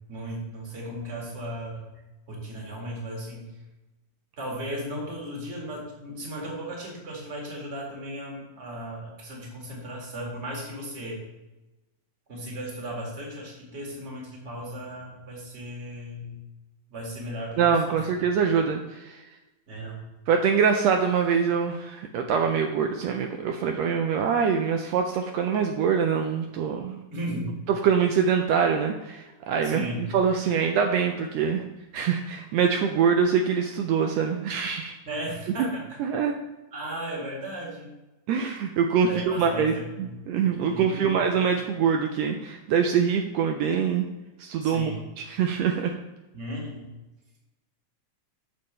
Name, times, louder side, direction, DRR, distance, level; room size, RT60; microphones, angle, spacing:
voice 1, 0.1-1.8 2.3-3.5 4.4-11.2 12.3-16.4 16.9-18.0 19.7-20.1 27.1-27.6 29.6-30.0 35.1-36.0 36.7-37.9 39.0-40.3 40.7-41.5 44.6-45.1 46.3-46.9, equal, 25° right, -2 dB, 1.7 m, -36 dB
voice 2, 17.6-19.2 20.3-27.0 27.7-29.9 30.1-31.6 31.9-34.9 35.6-35.7 36.0-36.3 38.3-44.0 44.4-44.9 45.2-45.9, right 6 dB, 85° right, 4 dB, 1.5 m, -24 dB
8.1 x 6.6 x 3.2 m, 1.1 s
omnidirectional pair, 3.5 m